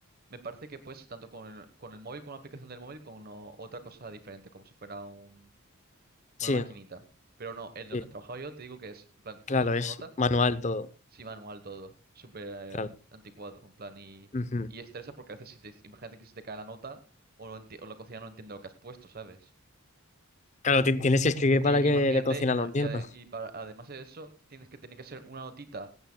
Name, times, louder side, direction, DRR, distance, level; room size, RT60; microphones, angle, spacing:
voice 1, 0.3-5.5 6.4-7.0 7.4-10.1 11.1-14.3 14.7-17.0 17.4-19.5 21.6-25.9, right 3 dB, 45° right, 1.1 m, -43 dB
voice 2, 9.5-10.9 12.7-12.9 14.3-14.7 20.6-23.0, left 2 dB, 30° left, 0.6 m, -25 dB
17.5 x 15.5 x 2.2 m
head